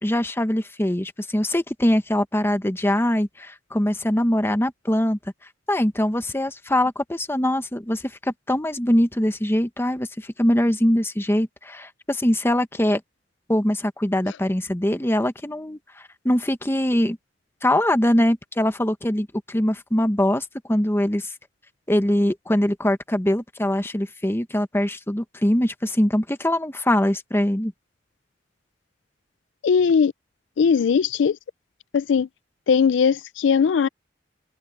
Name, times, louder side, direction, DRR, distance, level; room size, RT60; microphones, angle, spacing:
voice 1, 0.0-5.2 5.7-13.0 13.5-15.8 16.2-17.2 17.6-21.3 21.9-27.7, left 1 dB, 15° left, 1.1 m, -22 dB
voice 2, 29.6-30.1 30.6-31.4 31.9-32.3 32.7-33.9, left 6 dB, 75° left, 0.4 m, -19 dB
open air
head